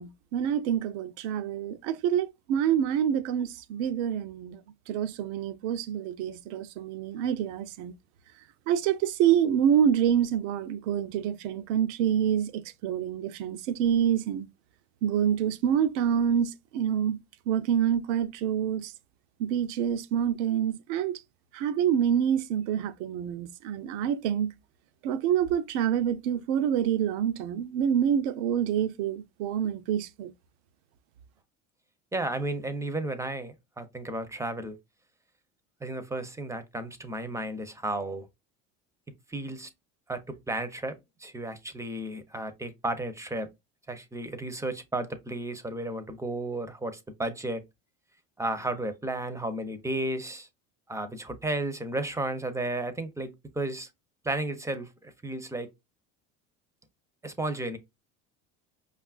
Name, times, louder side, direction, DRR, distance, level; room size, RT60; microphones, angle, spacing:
voice 1, 0.0-4.6 4.9-7.9 8.7-14.5 15.0-17.2 17.5-18.9 19.4-21.1 21.5-24.5 25.0-30.3, right 9 dB, 70° right, 0.6 m, -27 dB
voice 2, 32.1-34.8 35.8-38.3 39.3-39.7 40.1-43.5 43.9-47.6 48.4-50.5 50.9-53.9 54.2-55.7 57.2-57.8, right 2 dB, 10° right, 0.6 m, -33 dB
5.2 x 2.4 x 2.4 m
supercardioid pair, 90°, 37 cm